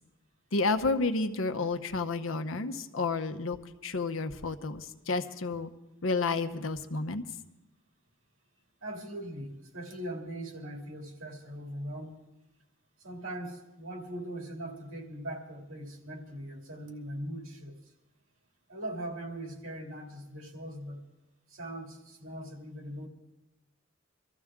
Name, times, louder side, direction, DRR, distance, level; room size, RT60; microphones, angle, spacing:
voice 1, 0.5-3.6 3.8-5.7 6.0-7.2, left 3 dB, 80° left, 7 dB, 0.8 m, -30 dB
voice 2, 8.8-12.2 13.0-17.8 18.7-21.0 21.5-23.1, right 1 dB, 85° right, 1 dB, 2.7 m, -40 dB
24.0 x 14.0 x 3.7 m, 0.99 s
head